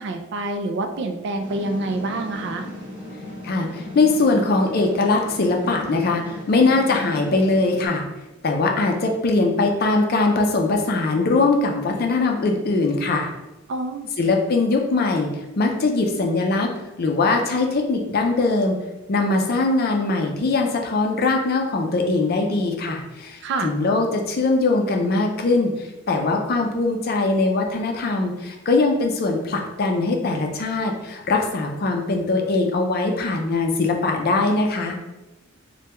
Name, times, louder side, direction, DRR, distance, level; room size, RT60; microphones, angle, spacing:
voice 1, 0.0-2.7 13.7-14.1 23.4-23.7, right 2 dB, 60° right, 6 dB, 0.3 m, -27 dB
sound 1, 1.4-7.9, left 1 dB, 25° right, 1.3 m, -36 dB
voice 2, 3.4-8.0 8.4-13.3 14.2-15.3 15.6-16.7 17.0-18.8 19.1-25.7 26.1-35.0, left 3 dB, 50° left, 3 dB, 0.4 m, -21 dB
3.3 x 2.2 x 2.9 m, 1.0 s
head